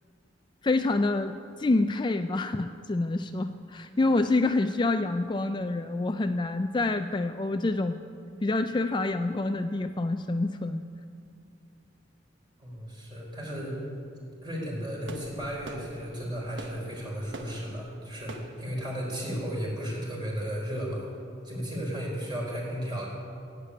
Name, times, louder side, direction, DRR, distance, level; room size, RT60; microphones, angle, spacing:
voice 1, 0.6-8.0 8.4-10.8, left 2 dB, 25° left, 8 dB, 0.4 m, -27 dB
voice 2, 12.6-13.9 14.4-21.1 21.4-23.1, equal, 25° right, -3 dB, 4.4 m, -34 dB
sound 1, 15.0-20.0, right 2 dB, 70° right, 1.1 m, -46 dB
15.5 x 8.2 x 9.8 m, 2.4 s
head